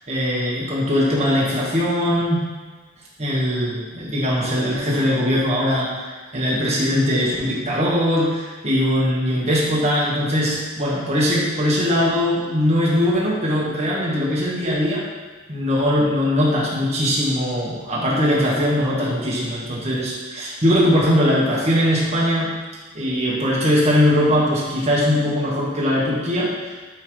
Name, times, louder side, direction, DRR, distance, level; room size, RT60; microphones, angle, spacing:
voice 1, 0.1-2.4 3.2-15.1 15.5-22.5 22.9-26.5, equal, 35° right, -6 dB, 1.5 m, -20 dB
9.6 x 3.8 x 3.3 m, 1.3 s
head